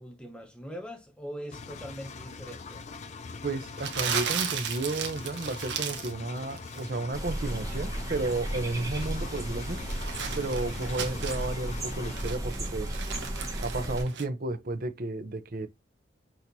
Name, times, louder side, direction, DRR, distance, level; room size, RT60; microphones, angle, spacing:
voice 1, 0.0-2.9 10.4-10.8, equal, 5° left, 1.0 m, -42 dB
Engine, 1.5-12.2, left 4 dB, 35° left, 0.3 m, -43 dB
voice 2, 3.4-9.8 10.3-13.0 13.6-15.7, right 2 dB, 50° right, 0.7 m, -32 dB
Crumpling crinkling, 3.8-6.2 6.5-6.9 8.6-11.5 11.9-14.2, right 7 dB, 70° right, 0.9 m, -35 dB
sound 1, 7.1-14.0, right 1 dB, 15° right, 1.1 m, -34 dB
6.3 x 2.9 x 2.7 m
head